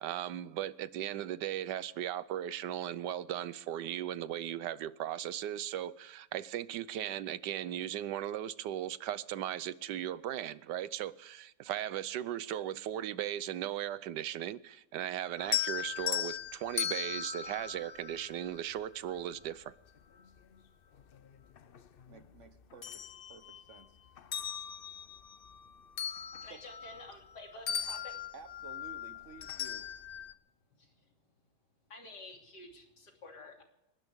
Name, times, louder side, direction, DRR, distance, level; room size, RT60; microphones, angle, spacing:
voice 1, 0.0-19.7, right 11 dB, 80° right, 1.3 m, -37 dB
sound 1, 15.4-18.7 20.4-20.5 21.0-22.2 22.6-23.8 24.2-27.4 27.7-30.3, left 9 dB, 60° left, 0.6 m, -38 dB
voice 2, 22.1-24.0 26.5-26.6 28.3-29.9, right 4 dB, 50° right, 1.4 m, -53 dB
voice 3, 26.4-28.2 30.8-30.9 31.9-33.6, left 2 dB, 75° left, 3.5 m, -50 dB
30.0 x 12.0 x 3.6 m
omnidirectional pair, 1.8 m